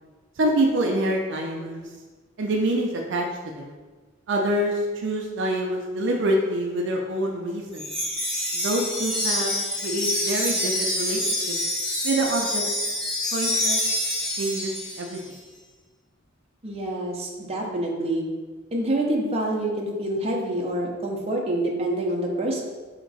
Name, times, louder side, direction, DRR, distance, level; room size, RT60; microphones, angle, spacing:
voice 1, 0.4-1.9 2.4-3.7 4.3-7.9 8.5-9.5 9.8-11.6 12.0-12.6 13.3-13.8 14.4-15.4, right 1 dB, 60° right, 0 dB, 0.5 m, -26 dB
Wind chime, 7.7-15.2, left 1 dB, 5° left, 1.2 m, -27 dB
voice 2, 16.6-18.2 18.7-22.6, right 1 dB, 30° right, -2 dB, 0.7 m, -26 dB
4.4 x 2.9 x 4.0 m, 1.3 s
head